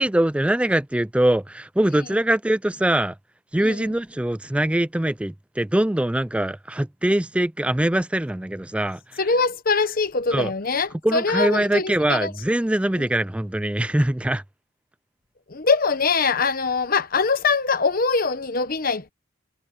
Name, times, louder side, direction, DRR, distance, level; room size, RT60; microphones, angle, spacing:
voice 1, 0.0-3.2 3.5-9.2 10.3-10.5 11.0-14.4, right 1 dB, 5° right, 0.3 m, -23 dB
voice 2, 9.2-12.3 13.0-13.1 15.5-19.1, left 4 dB, 45° left, 1.1 m, -23 dB
head